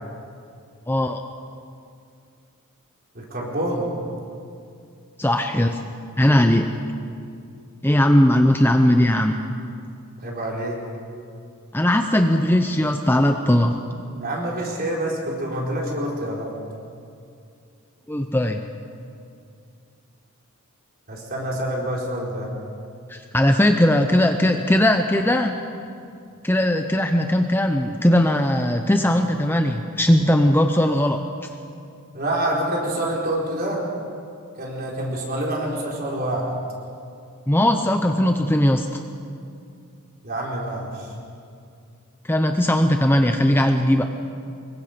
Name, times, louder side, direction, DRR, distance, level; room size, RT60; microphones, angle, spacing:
voice 1, 0.9-1.2 5.2-5.8 6.2-6.7 7.8-9.4 11.7-13.8 18.1-18.6 23.1-25.5 26.4-31.2 37.5-39.0 42.2-44.1, left 1 dB, 10° left, 5 dB, 0.7 m, -19 dB
voice 2, 3.1-3.9 10.2-10.8 14.2-16.5 21.1-22.5 32.1-33.8 34.6-36.5 40.2-41.1, right 1 dB, 45° right, -2 dB, 4.4 m, -27 dB
25.0 x 22.5 x 5.2 m, 2.4 s
head